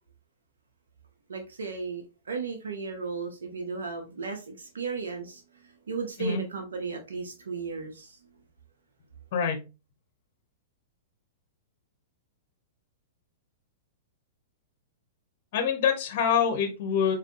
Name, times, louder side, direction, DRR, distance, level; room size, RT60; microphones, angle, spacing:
voice 1, 1.3-8.2, right 4 dB, 85° right, 3 dB, 0.7 m, -35 dB
voice 2, 15.5-17.2, left 7 dB, 55° left, 5 dB, 0.9 m, -25 dB
4.1 x 2.6 x 2.5 m, 0.29 s
hypercardioid pair, 120°, 0 cm